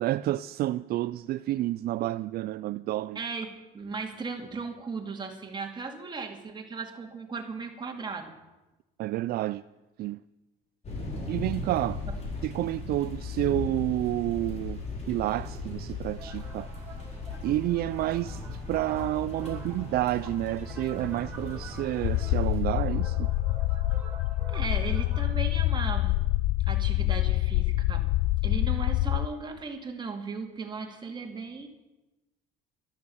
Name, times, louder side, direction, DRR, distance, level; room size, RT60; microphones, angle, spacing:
voice 1, 0.0-3.2 9.0-9.6 10.0-10.2 11.3-12.0 12.4-16.7 17.4-23.3, right 15 dB, 65° right, 0.4 m, -29 dB
voice 2, 3.2-8.4 24.5-26.3 26.7-28.1 28.4-31.7, right 4 dB, 25° right, 2.4 m, -37 dB
sound 1, 10.8-22.6, left 3 dB, 40° left, 5.0 m, -37 dB
sound 2, 16.2-25.3, right 3 dB, 10° right, 3.7 m, -48 dB
sound 3, 22.0-29.3, left 17 dB, 90° left, 0.4 m, -26 dB
13.0 x 12.5 x 7.1 m
cardioid pair, 110°, 17 cm